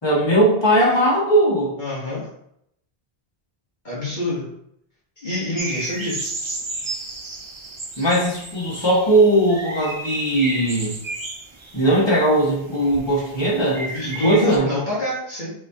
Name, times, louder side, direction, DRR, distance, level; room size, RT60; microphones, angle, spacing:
voice 1, 0.0-1.7 8.0-11.0 11.7-14.7, right 1 dB, 25° left, -6 dB, 1.6 m, -19 dB
voice 2, 1.8-2.3 3.8-4.5 5.2-6.2 13.9-15.5, left 1 dB, 45° left, -8 dB, 1.3 m, -26 dB
sound 1, 5.6-14.6, right 2 dB, 35° right, 0.6 m, -33 dB
4.4 x 4.2 x 2.8 m, 0.74 s
omnidirectional pair, 1.1 m